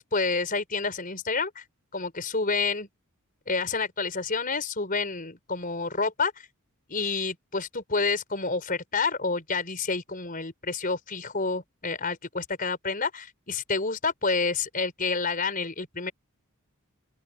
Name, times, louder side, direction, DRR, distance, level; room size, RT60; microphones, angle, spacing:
voice 1, 0.0-1.6 1.9-2.9 3.5-6.5 6.9-16.1, left 4 dB, 40° left, 4.9 m, -29 dB
open air
head